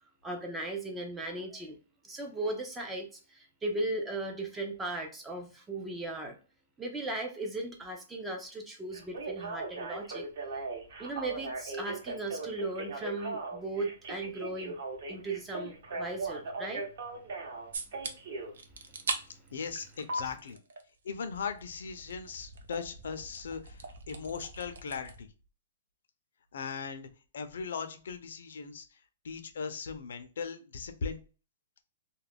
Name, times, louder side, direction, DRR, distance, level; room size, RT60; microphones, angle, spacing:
voice 1, 0.2-1.8 2.0-6.4 6.8-10.3 11.0-14.8 15.1-16.8, right 2 dB, 5° right, 3 dB, 0.3 m, -37 dB
Telephone, 8.9-18.5 20.1-20.2, right 3 dB, 50° right, 0.8 m, -38 dB
sound 1, 17.7-18.1 18.5-19.2 19.5-20.8 21.1-25.2, right 4 dB, 85° right, 0.5 m, -41 dB
voice 2, 19.5-20.6 21.0-25.3 26.5-27.1 27.3-31.2, left 5 dB, 65° left, 8 dB, 0.5 m, -39 dB
2.3 x 2.1 x 3.3 m, 0.36 s
hypercardioid pair, 175°, 0 cm